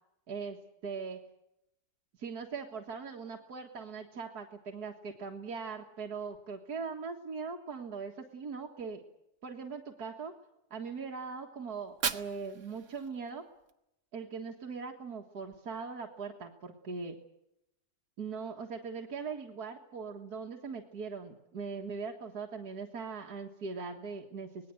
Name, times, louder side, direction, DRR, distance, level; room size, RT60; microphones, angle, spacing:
voice 1, 0.3-0.6 0.8-1.2 2.2-9.0 9.4-10.3 10.7-13.4 14.1-17.2 18.2-24.7, right 5 dB, 80° right, 1 dB, 2.2 m, -40 dB
Fire, 11.7-13.7, right 6 dB, 55° right, 1.5 m, -38 dB
26.0 x 19.5 x 7.8 m, 0.84 s
omnidirectional pair, 1.6 m